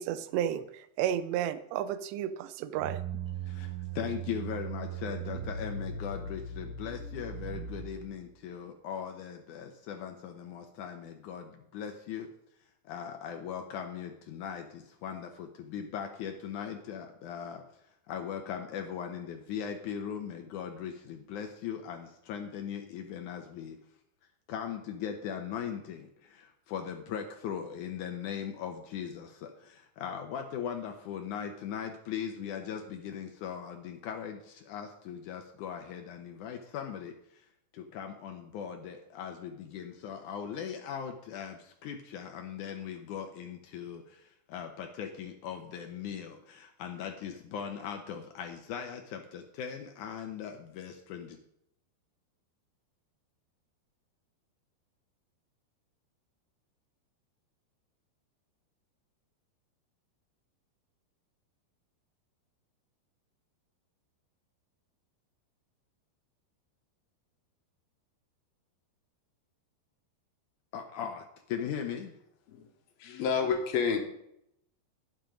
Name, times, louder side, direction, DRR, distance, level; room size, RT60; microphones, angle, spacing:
voice 1, 0.0-3.0, right 10 dB, 90° right, 14 dB, 2.9 m, -32 dB
sound 1, 2.8-8.2, right 6 dB, 40° right, 1.1 m, -39 dB
voice 2, 3.4-12.3 12.8-23.8 24.5-37.5 37.7-51.4 70.7-71.2 71.5-72.1, left 8 dB, 85° left, 4 dB, 1.7 m, -39 dB
voice 3, 73.0-74.0, left 6 dB, 70° left, 5 dB, 3.0 m, -29 dB
11.5 x 9.2 x 5.1 m, 0.76 s
omnidirectional pair, 4.8 m